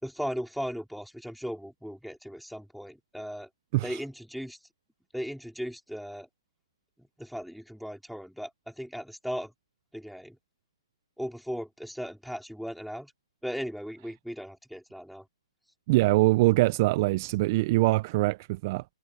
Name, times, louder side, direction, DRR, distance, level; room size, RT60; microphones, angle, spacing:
voice 1, 0.0-4.6 5.1-6.3 7.0-9.5 9.9-10.4 11.2-13.1 13.4-15.3, equal, ahead, 4.4 m, -37 dB
voice 2, 15.9-18.8, right 20 dB, 35° right, 0.5 m, -23 dB
hypercardioid pair, 150°, 3 cm